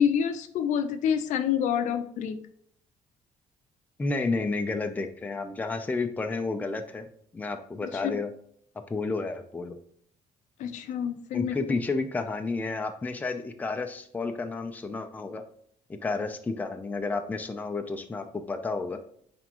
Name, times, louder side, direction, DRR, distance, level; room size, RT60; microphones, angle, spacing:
voice 1, 0.0-2.4 8.0-8.2 10.6-11.6, left 8 dB, 70° left, 9 dB, 0.7 m, -27 dB
voice 2, 4.0-7.1 7.3-8.3 8.8-9.8 11.3-15.4 15.9-19.0, left 3 dB, 10° left, 5 dB, 0.5 m, -31 dB
9.0 x 3.5 x 3.0 m, 0.64 s
cardioid pair, 155°, 13 cm